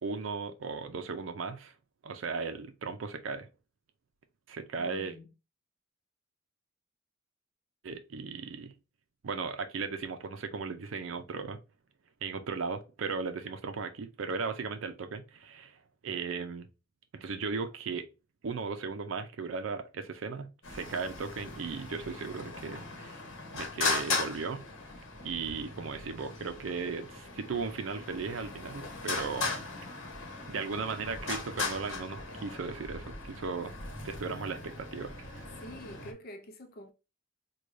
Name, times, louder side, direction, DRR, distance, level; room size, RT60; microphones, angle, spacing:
voice 1, 0.0-1.7 2.0-3.5 4.5-5.2 7.8-8.7 9.2-11.6 12.2-16.7 17.1-18.1 18.4-23.2 23.5-24.6 25.2-29.9 30.5-33.7 34.0-35.5, right 4 dB, 75° right, 0.5 m, -36 dB
voice 2, 4.8-5.3 33.7-33.8 35.6-36.9, equal, 50° left, 0.5 m, -47 dB
Traffic noise roadway noise, 20.6-36.1, left 3 dB, 70° left, 1.0 m, -38 dB
4.7 x 2.2 x 2.5 m
head